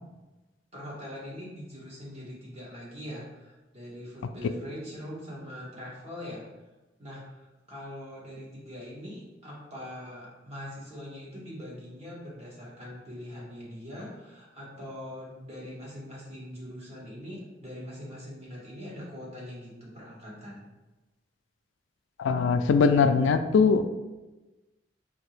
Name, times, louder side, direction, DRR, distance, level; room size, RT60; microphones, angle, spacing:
voice 1, 0.7-6.5 7.0-20.7, equal, 35° right, -6 dB, 1.4 m, -42 dB
voice 2, 22.2-23.8, left 5 dB, 85° left, 9 dB, 0.3 m, -21 dB
4.4 x 2.8 x 3.2 m, 1.1 s
head